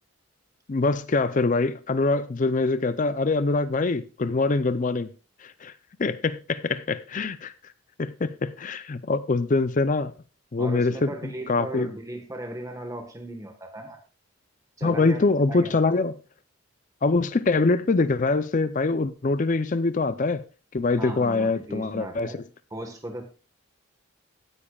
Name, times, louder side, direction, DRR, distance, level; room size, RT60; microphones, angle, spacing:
voice 1, 0.7-5.1 5.4-5.7 6.0-7.5 8.0-10.1 10.5-11.1 11.5-11.9 14.8-16.1 17.0-20.4 20.7-22.3, left 3 dB, 35° left, 0.5 m, -24 dB
voice 2, 10.6-14.0 14.8-15.2 15.5-15.8 21.0-22.4 22.7-23.2, right 1 dB, 15° right, 1.3 m, -37 dB
16.0 x 9.8 x 2.3 m
head